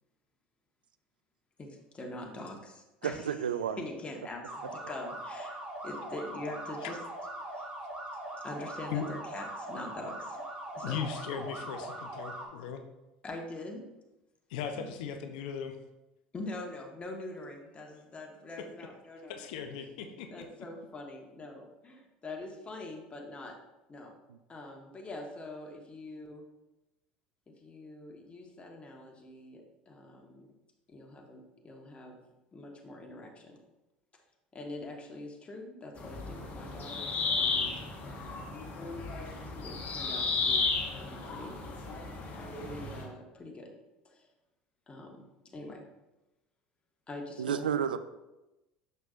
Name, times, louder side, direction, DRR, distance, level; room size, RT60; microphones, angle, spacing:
voice 1, 1.6-3.3 3.8-7.0 7.5-7.7 8.4-10.4 10.7-11.0 13.2-13.8 16.3-19.5 20.3-23.6 23.9-24.2 24.5-26.5 27.5-30.5 30.9-32.2 32.5-33.6 34.5-38.6 39.6-40.6 41.0-41.6 42.6-43.7 44.0-44.3 44.9-45.8 47.1-47.7, left 2 dB, 25° left, 1.4 m, -44 dB
voice 2, 3.0-3.8 47.4-48.0, right 8 dB, 85° right, 0.3 m, -31 dB
sound 1, 4.4-12.5, right 1 dB, 25° right, 1.7 m, -41 dB
voice 3, 10.8-12.8 14.5-15.8 18.6-18.7 19.3-20.5, left 7 dB, 70° left, 0.6 m, -38 dB
sound 2, 36.0-43.0, left 4 dB, 40° left, 1.3 m, -34 dB
6.6 x 6.0 x 2.5 m
hypercardioid pair, 70°, 5 cm